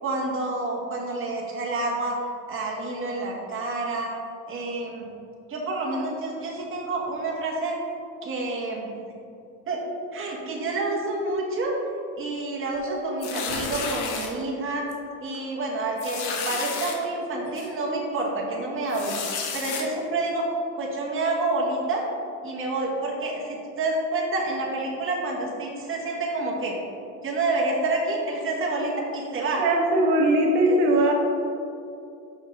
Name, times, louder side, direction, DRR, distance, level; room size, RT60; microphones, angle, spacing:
voice 1, 0.0-2.2 2.5-4.1 4.5-5.0 5.5-7.7 8.2-8.9 9.7-9.8 10.1-11.7 12.1-14.9 15.2-19.2 19.5-20.5 20.8-22.0 22.4-26.8 27.2-29.6 30.6-31.1, right 2 dB, 35° right, -2 dB, 1.4 m, -28 dB
sound 1, 13.2-14.3 14.9-15.1 15.3-15.4 16.0-17.0 17.6-17.7 18.9-19.8, left 5 dB, 75° left, 1.2 m, -31 dB
voice 2, 29.6-31.1, right 1 dB, 75° right, 0 dB, 1.0 m, -20 dB
5.8 x 5.5 x 3.9 m, 2.5 s
supercardioid pair, 115°, 39 cm